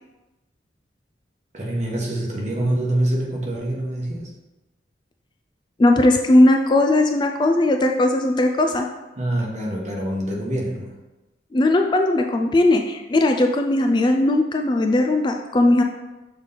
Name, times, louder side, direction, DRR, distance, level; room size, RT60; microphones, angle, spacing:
voice 1, 1.5-4.3 9.2-11.0, right 1 dB, 40° right, -3 dB, 1.3 m, -25 dB
voice 2, 5.8-8.9 11.5-15.8, left 1 dB, 25° left, 4 dB, 0.3 m, -18 dB
6.4 x 4.0 x 3.9 m, 1.1 s
head